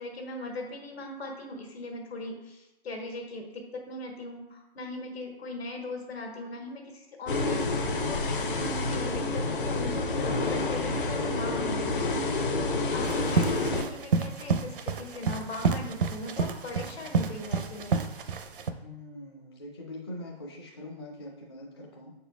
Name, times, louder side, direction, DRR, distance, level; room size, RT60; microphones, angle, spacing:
voice 1, 0.0-17.9, left 2 dB, 75° left, 2 dB, 1.6 m, -39 dB
sound 1, 7.3-13.8, left 2 dB, 55° left, 0.8 m, -28 dB
sound 2, 13.0-18.7, right 5 dB, 60° right, 0.6 m, -29 dB
voice 2, 18.8-22.1, left 1 dB, 25° left, -2 dB, 0.5 m, -43 dB
6.4 x 4.3 x 3.4 m, 0.92 s
hypercardioid pair, 170°, 31 cm